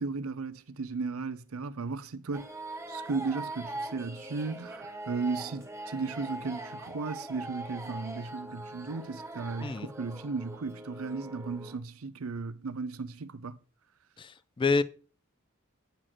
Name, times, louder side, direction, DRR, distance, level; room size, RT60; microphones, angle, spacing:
voice 1, 0.0-2.5 2.9-13.6, right 4 dB, 80° right, 0.6 m, -35 dB
sound 1, 2.3-11.8, right 2 dB, 15° right, 1.2 m, -42 dB
voice 2, 14.2-14.8, left 4 dB, 25° left, 0.3 m, -28 dB
9.1 x 4.0 x 6.2 m
head